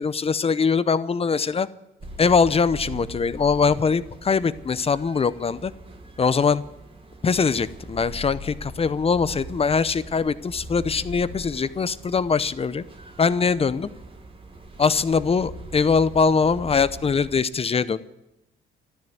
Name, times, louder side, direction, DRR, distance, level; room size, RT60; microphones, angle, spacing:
voice 1, 0.0-1.7 2.2-5.7 6.2-6.6 7.2-12.8 13.2-13.9 14.8-18.0, left 5 dB, 30° left, 15 dB, 0.7 m, -22 dB
sound 1, 2.0-17.4, right 1 dB, 25° right, 1.8 m, -41 dB
13.0 x 11.0 x 9.3 m, 0.90 s
cardioid pair, 90°, 20 cm